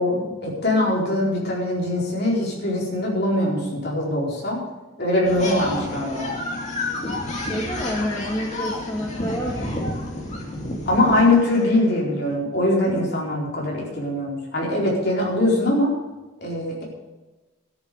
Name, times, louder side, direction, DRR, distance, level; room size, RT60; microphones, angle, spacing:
voice 1, 0.0-4.6 5.0-6.3 10.9-15.9 16.4-16.8, left 1 dB, 55° left, -3 dB, 4.5 m, -22 dB
sound 1, 5.2-11.7, left 2 dB, 35° left, 2.7 m, -30 dB
voice 2, 7.4-9.6, equal, 20° left, -3 dB, 1.8 m, -28 dB
13.5 x 8.8 x 7.0 m, 1.2 s
head